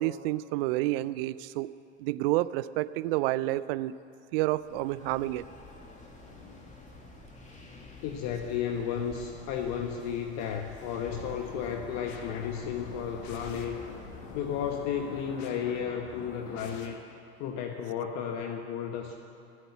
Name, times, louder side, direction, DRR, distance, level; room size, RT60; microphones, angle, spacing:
voice 1, 0.0-1.7 2.0-3.9 4.3-5.4, right 16 dB, 60° right, 17 dB, 0.5 m, -29 dB
sound 1, 4.5-15.3, left 2 dB, 20° left, 2.4 m, -49 dB
voice 2, 8.0-13.8 14.3-17.0 17.4-19.2, left 8 dB, 50° left, 4 dB, 1.1 m, -33 dB
sound 2, 11.1-16.9, left 4 dB, 70° left, 1.5 m, -45 dB
15.0 x 8.1 x 8.4 m, 2.5 s
hypercardioid pair, 80°, 33 cm